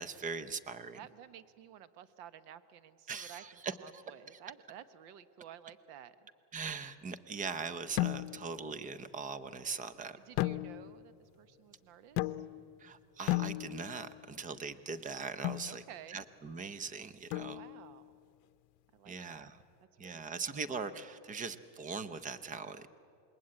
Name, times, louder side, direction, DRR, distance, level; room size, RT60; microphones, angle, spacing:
voice 1, 0.0-1.0 3.1-4.0 6.5-10.2 12.8-15.8 16.1-17.6 19.1-19.5 20.0-22.9, right 5 dB, 15° right, 14 dB, 0.7 m, -41 dB
voice 2, 0.9-6.2 10.2-12.3 15.7-16.2 17.5-18.1 18.9-19.5 20.0-20.5, right 10 dB, 80° right, 14 dB, 1.2 m, -53 dB
sound 1, 8.0-8.6 10.4-11.1 12.2-12.8 13.3-14.1 15.4-15.8 17.3-17.9, left 18 dB, 70° left, 0.7 m, -35 dB
27.0 x 21.5 x 8.6 m, 2.5 s
cardioid pair, 145°, 45 cm